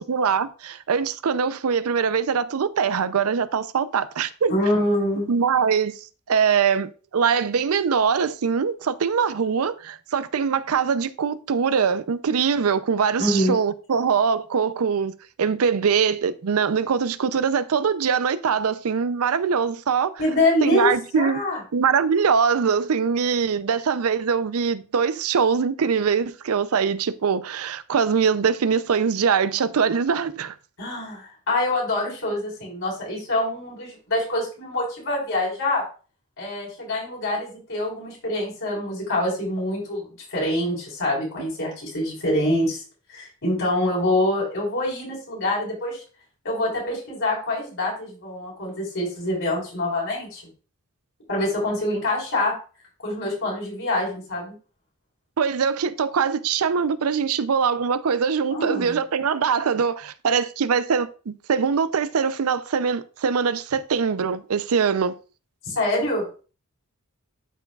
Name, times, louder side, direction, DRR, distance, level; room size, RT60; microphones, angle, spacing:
voice 1, 0.0-4.5 5.3-5.9 6.3-15.1 15.4-20.1 20.6-21.4 21.7-30.5 55.4-65.1, right 6 dB, 70° right, 0.5 m, -22 dB
voice 2, 4.5-5.3 13.2-13.6 20.2-21.6 30.8-35.8 36.4-42.8 43.1-46.0 46.4-50.4 51.3-52.5 53.0-54.5 58.5-59.0 65.7-66.3, left 1 dB, 60° left, 4.0 m, -25 dB
11.5 x 4.6 x 2.3 m
head